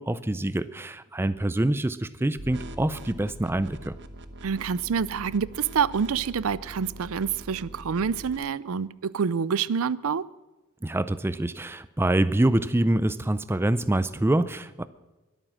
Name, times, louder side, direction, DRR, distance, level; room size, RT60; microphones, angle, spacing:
voice 1, 0.0-4.0 10.8-14.8, right 1 dB, 10° right, 0.4 m, -25 dB
sound 1, 2.4-8.4, right 1 dB, 55° right, 1.1 m, -43 dB
voice 2, 4.4-10.2, right 6 dB, 70° right, 0.5 m, -27 dB
22.0 x 9.0 x 6.2 m
head